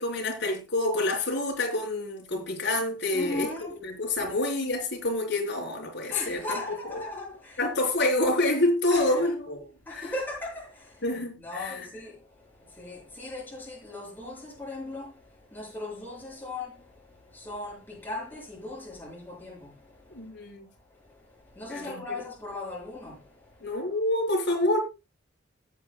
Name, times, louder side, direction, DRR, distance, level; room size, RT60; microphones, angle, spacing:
voice 1, 0.0-7.0 7.6-10.1 11.0-11.8 20.1-20.7 21.7-22.2 23.6-24.8, left 2 dB, 60° left, 4.3 m, -28 dB
voice 2, 3.1-3.7 4.2-4.3 6.1-7.6 8.9-9.3 9.8-11.0 11.4-20.4 20.9-23.8, left 2 dB, 10° left, 7.0 m, -39 dB
17.0 x 8.4 x 2.3 m
head